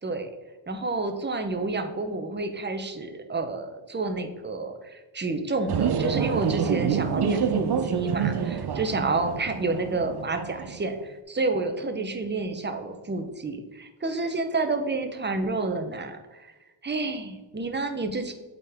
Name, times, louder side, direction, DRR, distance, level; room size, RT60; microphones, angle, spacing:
voice 1, 0.7-16.5 16.8-18.3, right 3 dB, 20° right, 6 dB, 0.8 m, -29 dB
sound 1, 5.7-11.0, right 7 dB, 55° right, 0.6 m, -27 dB
8.4 x 3.9 x 3.5 m, 1.2 s
wide cardioid pair, 90°, 48 cm